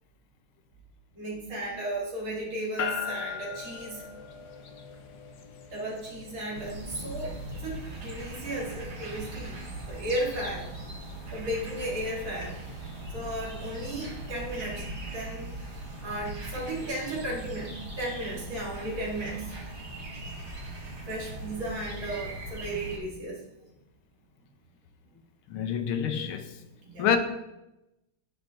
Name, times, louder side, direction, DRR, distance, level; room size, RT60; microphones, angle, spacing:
voice 1, 1.1-4.1 5.7-9.6 9.9-10.7 11.3-12.6 13.1-14.9 15.1-19.5 21.1-23.4 26.8-27.1, right 1 dB, 70° right, 3.1 m, -35 dB
sound 1, 2.8-17.1, left 6 dB, 60° left, 1.2 m, -43 dB
sound 2, 6.5-23.0, right 2 dB, 35° right, 1.6 m, -40 dB
voice 2, 25.5-26.5 27.0-27.2, left 8 dB, 85° left, 1.7 m, -27 dB
10.0 x 8.8 x 2.6 m
omnidirectional pair, 2.3 m